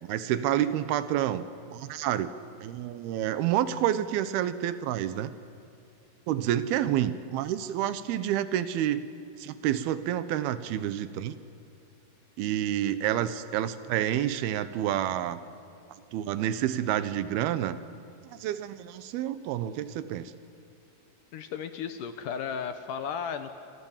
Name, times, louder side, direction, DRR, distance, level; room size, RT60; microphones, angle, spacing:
voice 1, 0.0-2.3 2.6-5.3 6.3-9.1 9.4-11.3 12.4-15.4 16.1-17.8 18.3-20.3, right 11 dB, 75° right, 13 dB, 2.7 m, -29 dB
voice 2, 21.3-23.5, left 7 dB, 70° left, 8 dB, 2.0 m, -34 dB
27.0 x 25.5 x 7.3 m, 2.6 s
omnidirectional pair, 4.9 m